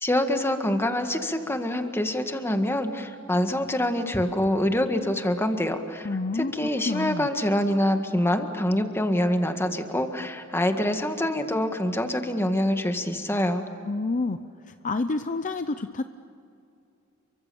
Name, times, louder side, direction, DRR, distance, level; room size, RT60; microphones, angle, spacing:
voice 1, 0.0-6.1 6.3-13.6, left 1 dB, 10° left, 6 dB, 1.8 m, -25 dB
voice 2, 6.0-6.5 6.9-7.3 13.8-14.4 14.8-16.0, left 3 dB, 35° left, 10 dB, 0.6 m, -28 dB
30.0 x 24.0 x 7.0 m, 2.6 s
head